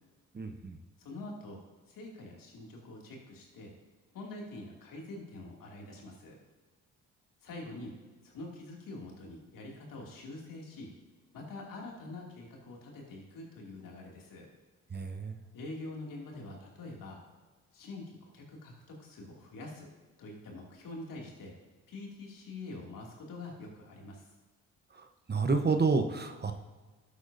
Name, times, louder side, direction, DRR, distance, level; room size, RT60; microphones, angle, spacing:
voice 1, 0.3-0.8 14.9-15.4 25.3-26.5, right 4 dB, 30° right, 6 dB, 1.0 m, -29 dB
voice 2, 1.0-1.6 1.9-3.7 4.1-6.4 7.4-7.9 8.2-10.9 11.3-14.5 15.5-17.2 17.7-19.9 20.2-21.5 21.9-24.2, left 2 dB, 65° left, -1 dB, 2.6 m, -45 dB
12.0 x 8.2 x 2.7 m, 1.3 s
supercardioid pair, 55°, 35 cm